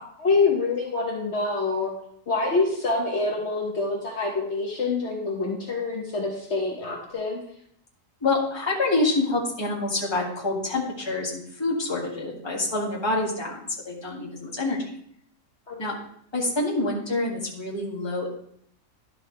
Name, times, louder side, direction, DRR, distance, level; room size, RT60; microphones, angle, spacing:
voice 1, 0.0-1.9 2.3-7.4 15.7-15.8, left 3 dB, 55° left, -2 dB, 1.5 m, -26 dB
voice 2, 8.2-14.8 15.8-16.0 16.3-18.3, left 2 dB, 20° left, -4 dB, 1.8 m, -27 dB
11.5 x 6.3 x 3.2 m, 0.67 s
omnidirectional pair, 1.4 m